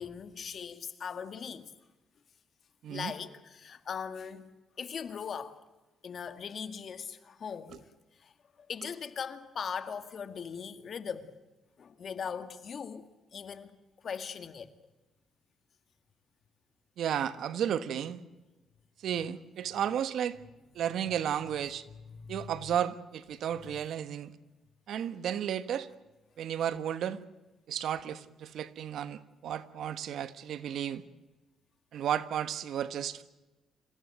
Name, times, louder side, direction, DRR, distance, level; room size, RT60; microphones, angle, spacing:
voice 1, 0.0-1.7 2.9-4.5 4.8-5.6 6.0-7.8 8.2-8.3 8.7-11.4 11.8-13.0 13.3-13.7 14.0-14.7 22.0-22.5, left 6 dB, 55° left, 1.9 m, -39 dB
voice 2, 17.0-18.2 19.0-20.4 20.7-21.8 22.3-24.3 24.9-25.9 26.4-27.2 27.7-31.0 31.9-33.2, right 9 dB, 70° right, 1.3 m, -33 dB
27.0 x 15.5 x 9.2 m
cardioid pair, 90°, 0 cm